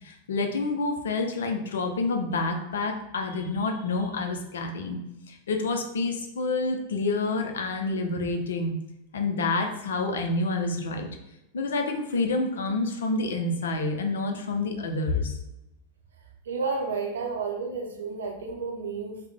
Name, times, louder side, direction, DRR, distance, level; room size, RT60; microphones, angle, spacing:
voice 1, 0.0-5.0 5.3-8.7 9.1-11.1 11.5-15.4, left 3 dB, 65° left, 4 dB, 0.5 m, -28 dB
voice 2, 16.5-19.3, right 4 dB, 65° right, 1 dB, 0.6 m, -31 dB
3.2 x 2.1 x 3.4 m, 0.89 s
figure-of-eight pair, 90°, 0 cm